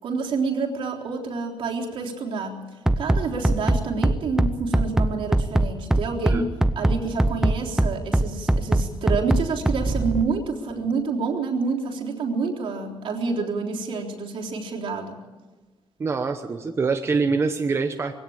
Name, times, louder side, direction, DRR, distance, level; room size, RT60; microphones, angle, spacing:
voice 1, 0.0-2.6 3.0-6.5 6.8-15.2, right 4 dB, 70° right, 1 dB, 3.6 m, -28 dB
Bass drum, 2.9-10.2, right 1 dB, 5° right, 0.7 m, -20 dB
voice 2, 16.0-18.1, right 4 dB, 25° right, 5 dB, 1.0 m, -24 dB
21.5 x 17.0 x 8.7 m, 1.3 s
wide cardioid pair, 175°, 9 cm